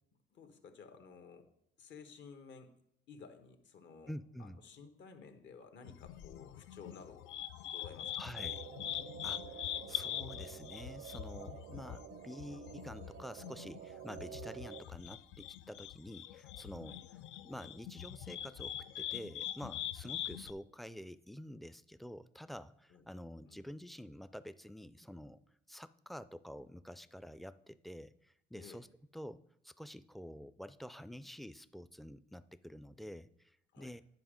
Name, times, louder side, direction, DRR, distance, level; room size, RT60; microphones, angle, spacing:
voice 1, 0.3-1.5 1.8-2.8 3.1-4.1 4.4-7.4 7.7-8.1 16.8-17.0 22.9-23.0 23.4-23.6 28.6-28.8 33.7-33.9, left 5 dB, 65° left, 7 dB, 1.2 m, -54 dB
voice 2, 4.1-4.6 8.2-8.6 9.2-17.2 17.4-25.4 25.7-28.9 29.1-34.0, equal, ahead, 14 dB, 0.3 m, -48 dB
sound 1, 5.8-20.5, left 11 dB, 85° left, 0.4 m, -43 dB
sound 2, 8.4-14.8, right 10 dB, 60° right, 0.5 m, -50 dB
9.6 x 5.3 x 5.0 m, 0.77 s
cardioid pair, 90°, 20 cm